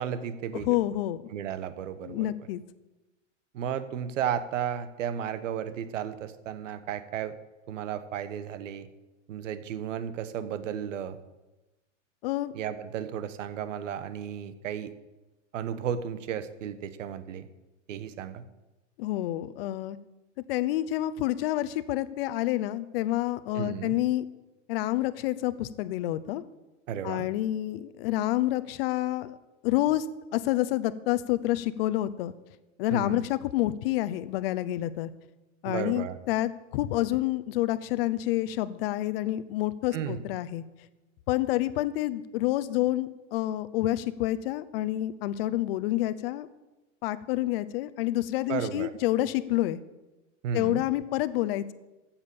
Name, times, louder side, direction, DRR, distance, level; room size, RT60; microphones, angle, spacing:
voice 1, 0.0-0.8 1.3-2.3 3.5-7.4 7.7-8.9 9.3-11.2 12.5-14.9 15.5-17.5 17.9-18.4 23.5-24.0 26.9-27.3 32.9-33.2 35.6-36.2 39.9-40.2 48.5-48.9 50.4-50.8, right 9 dB, 85° right, 13 dB, 1.3 m, -33 dB
voice 2, 0.5-1.2 2.0-2.6 12.2-12.5 19.0-20.0 20.5-24.3 24.7-26.4 27.0-29.4 29.6-30.1 30.3-32.3 32.8-35.1 35.6-40.6 41.3-46.5 47.0-49.8 50.5-51.7, left 15 dB, 50° left, 14 dB, 0.8 m, -28 dB
15.0 x 7.4 x 7.1 m, 1.1 s
supercardioid pair, 160°, 37 cm